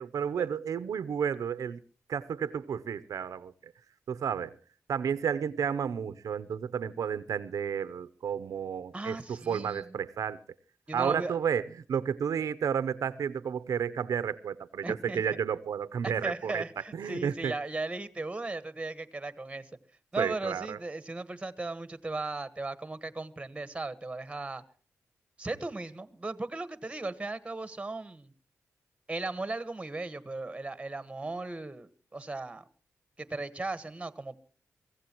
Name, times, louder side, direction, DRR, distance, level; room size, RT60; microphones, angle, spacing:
voice 1, 0.0-1.8 2.1-3.7 4.1-4.6 4.9-10.4 10.9-17.5 20.2-20.8, right 7 dB, 90° right, 0.7 m, -32 dB
voice 2, 8.9-9.9 10.9-11.4 14.8-15.4 16.0-19.7 20.1-24.6 25.4-28.3 29.1-32.6 33.2-34.4, right 2 dB, 20° right, 1.4 m, -37 dB
23.5 x 16.0 x 3.0 m
wide cardioid pair, 100°, 6 cm